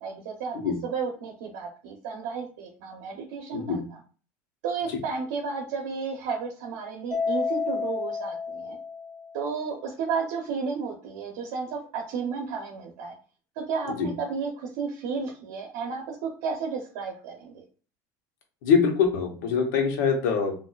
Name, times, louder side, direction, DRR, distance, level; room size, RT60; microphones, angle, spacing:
voice 1, 0.0-4.0 4.6-8.8 9.3-13.1 13.6-17.6, right 5 dB, 80° right, 1 dB, 0.8 m, -33 dB
Mallet percussion, 7.1-9.6, left 5 dB, 5° left, 0.8 m, -30 dB
voice 2, 18.6-20.6, left 6 dB, 90° left, 3 dB, 1.0 m, -23 dB
4.3 x 2.6 x 2.4 m, 0.38 s
supercardioid pair, 120°, 9 cm